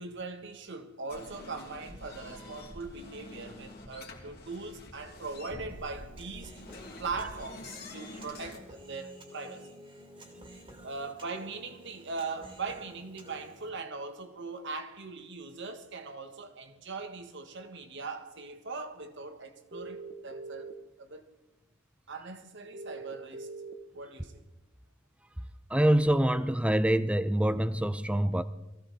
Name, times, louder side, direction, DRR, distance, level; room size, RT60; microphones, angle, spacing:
voice 1, 0.0-6.7 7.0-9.7 10.8-20.7 21.0-21.3 22.1-23.5 23.9-24.4, right 4 dB, 60° right, 1.5 m, -40 dB
sound 1, 1.1-8.6, left 2 dB, 50° left, 2.8 m, -47 dB
Human voice, 5.7-13.7, equal, 25° right, 2.5 m, -51 dB
sound 2, 19.7-20.7 22.7-23.7, right 3 dB, 45° right, 1.1 m, -42 dB
voice 2, 25.7-28.4, right 1 dB, 5° right, 0.6 m, -25 dB
22.0 x 15.5 x 4.2 m
head